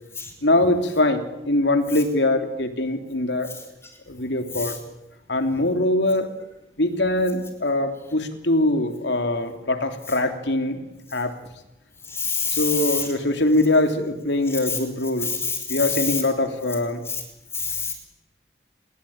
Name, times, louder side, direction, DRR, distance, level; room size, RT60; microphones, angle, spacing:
voice 1, 0.4-3.5 4.1-4.8 5.3-6.3 6.8-10.8 11.1-11.3 12.5-15.3 15.7-17.0, left 2 dB, 80° left, 6 dB, 3.1 m, -22 dB
voice 2, 12.1-13.1 14.7-14.8 15.2-16.2 17.1-17.2 17.5-17.9, left 5 dB, 15° left, 5 dB, 5.1 m, -26 dB
29.5 x 21.5 x 8.8 m, 0.91 s
head